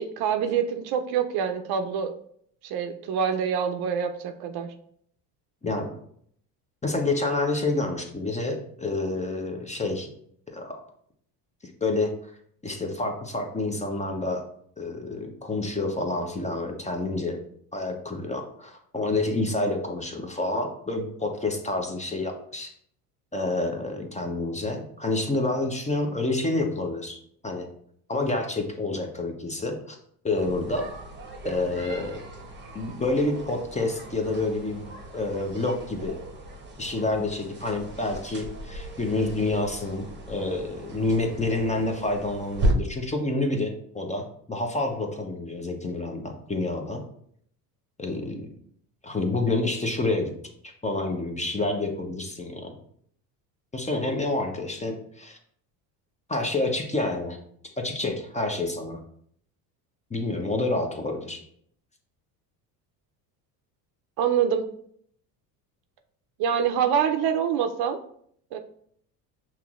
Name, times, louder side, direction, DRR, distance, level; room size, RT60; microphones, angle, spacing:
voice 1, 0.0-2.1 2.6-4.7 64.2-64.7 66.4-68.0 68.5-68.6, right 8 dB, 55° right, 7 dB, 0.6 m, -25 dB
voice 2, 6.8-10.1 10.5-10.8 11.8-12.1 12.6-14.4 14.8-17.4 17.7-22.7 23.3-27.7 28.1-30.0 30.2-30.9 31.4-32.2 32.7-36.2 36.8-47.0 48.0-48.5 49.0-50.3 50.6-52.7 53.7-55.4 56.3-57.4 57.8-59.0 60.1-61.4, left 2 dB, 15° left, 3 dB, 0.6 m, -28 dB
sound 1, 30.3-42.7, right 1 dB, 25° right, 0.9 m, -36 dB
5.7 x 3.0 x 2.4 m, 0.65 s
supercardioid pair, 85°, 47 cm